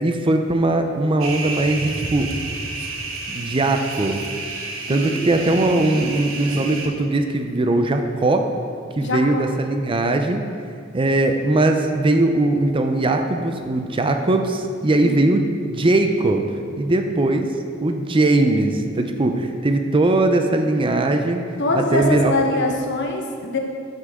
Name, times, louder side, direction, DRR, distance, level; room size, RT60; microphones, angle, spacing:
voice 1, 0.0-2.3 3.3-4.2 4.9-8.5 9.0-10.4 10.9-16.5 16.8-17.5 17.8-21.4 21.7-22.4, right 2 dB, 25° right, 5 dB, 0.5 m, -20 dB
sound 1, 1.2-6.9, right 3 dB, 80° right, 1.1 m, -30 dB
voice 2, 4.9-5.9 9.0-9.5 15.0-15.3 21.6-23.6, left 2 dB, 60° left, 2 dB, 1.1 m, -24 dB
12.5 x 6.6 x 3.6 m, 2.3 s
head